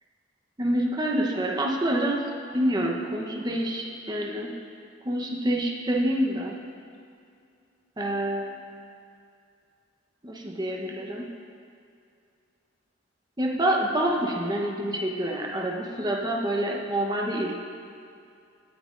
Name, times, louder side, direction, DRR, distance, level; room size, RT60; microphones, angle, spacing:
voice 1, 0.6-2.2 2.5-4.5 5.0-6.6 8.0-8.7 10.2-11.3 13.4-17.5, right 1 dB, 20° right, -1 dB, 1.0 m, -27 dB
18.5 x 9.1 x 2.6 m, 2.5 s
head